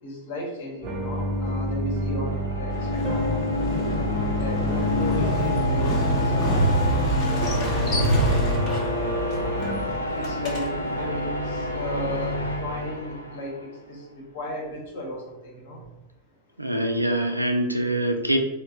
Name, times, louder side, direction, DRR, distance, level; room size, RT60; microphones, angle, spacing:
voice 1, 0.0-3.4 4.0-5.9 6.2-8.9 10.2-10.7 10.9-15.8, left 1 dB, 55° left, -1 dB, 1.0 m, -36 dB
sound 1, 0.7-13.8, left 2 dB, 80° left, 0.4 m, -29 dB
sound 2, 0.8-9.8, equal, 35° right, 0.6 m, -29 dB
Motorcycle, 2.7-11.1, right 1 dB, 35° left, 0.9 m, -27 dB
voice 2, 16.6-18.4, right 1 dB, 85° right, 4 dB, 0.4 m, -24 dB
3.1 x 2.1 x 3.9 m, 0.93 s
figure-of-eight pair, 90°, 0 cm